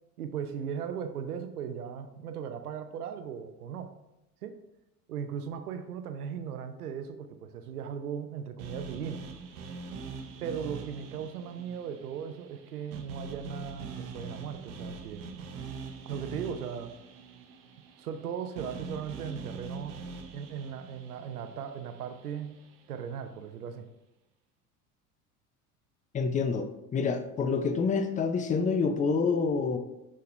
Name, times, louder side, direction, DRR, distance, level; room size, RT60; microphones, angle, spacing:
voice 1, 0.2-3.9 4.4-4.6 5.1-9.2 10.4-15.3 16.0-16.9 18.0-20.0 20.3-22.6 22.9-23.9, right 7 dB, 75° right, 8 dB, 0.7 m, -37 dB
sound 1, 8.6-22.8, right 4 dB, 60° right, 1.1 m, -44 dB
voice 2, 26.1-26.7 26.9-29.8, left 5 dB, 15° left, 8 dB, 0.6 m, -27 dB
6.5 x 6.5 x 2.6 m, 0.89 s
figure-of-eight pair, 70°, 45 cm